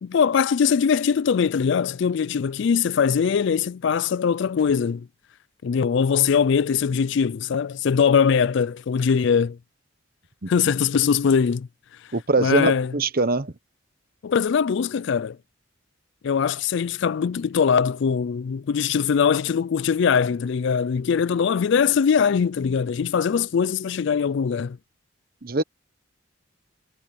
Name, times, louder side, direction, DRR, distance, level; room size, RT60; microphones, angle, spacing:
voice 1, 0.0-5.1 5.6-9.6 10.5-11.7 12.4-12.9 14.2-15.4 16.2-24.8, left 6 dB, 60° left, 0.4 m, -21 dB
voice 2, 12.1-13.5 25.4-25.6, right 3 dB, 45° right, 1.0 m, -22 dB
head